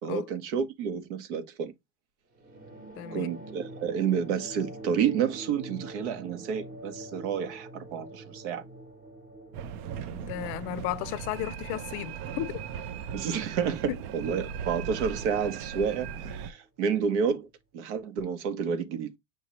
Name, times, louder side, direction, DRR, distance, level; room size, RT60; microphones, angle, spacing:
voice 1, 0.0-1.7 3.1-8.6 13.1-17.5 17.7-19.1, right 7 dB, 80° right, 1.1 m, -30 dB
sound 1, 2.4-17.2, right 1 dB, 25° right, 1.1 m, -46 dB
voice 2, 3.0-3.3 10.1-12.6 13.9-14.0, left 14 dB, 45° left, 0.4 m, -34 dB
sound 2, 9.5-16.5, right 7 dB, 55° right, 0.6 m, -38 dB
6.3 x 2.9 x 2.9 m
supercardioid pair, 155°, 34 cm